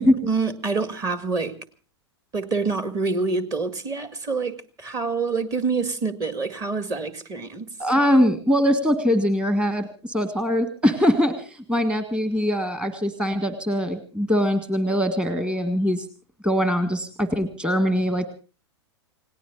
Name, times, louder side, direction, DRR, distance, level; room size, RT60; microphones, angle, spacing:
voice 1, 0.0-1.6 2.3-7.7, right 4 dB, 25° right, 10 dB, 2.0 m, -26 dB
voice 2, 7.8-16.1 16.4-18.3, equal, 5° right, 9 dB, 1.6 m, -22 dB
29.5 x 18.0 x 2.5 m, 0.38 s
figure-of-eight pair, 100°, 15 cm